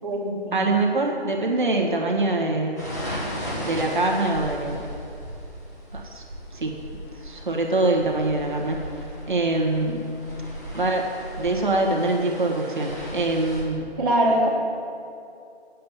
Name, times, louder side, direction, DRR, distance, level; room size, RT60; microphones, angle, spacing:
voice 1, 0.0-0.7 14.0-14.5, right 1 dB, 20° right, -8 dB, 1.1 m, -23 dB
voice 2, 0.5-2.9 3.6-4.8 5.9-6.2 6.5-6.9 7.2-8.8 9.3-10.1 10.7-11.1 11.4-13.8, right 2 dB, 45° right, 0 dB, 1.5 m, -24 dB
sound 1, 2.8-13.6, equal, 15° left, 1.1 m, -36 dB
9.3 x 7.5 x 7.3 m, 2.5 s
hypercardioid pair, 175°, 33 cm